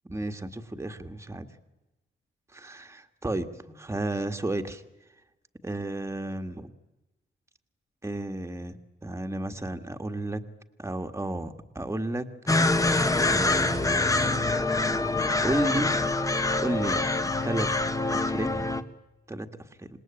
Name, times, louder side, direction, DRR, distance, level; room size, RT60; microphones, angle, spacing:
voice 1, 0.1-1.5 2.5-4.8 5.6-6.7 8.0-10.4 10.8-12.3 13.2-14.5 15.4-15.9 16.6-17.7 18.1-18.7 19.3-19.5 19.8-19.9, right 1 dB, 15° right, 7 dB, 1.7 m, -32 dB
sound 1, 12.5-18.8, left 2 dB, 15° left, 1.3 m, -25 dB
26.5 x 20.5 x 8.9 m, 1.0 s
wide cardioid pair, 135°, 20 cm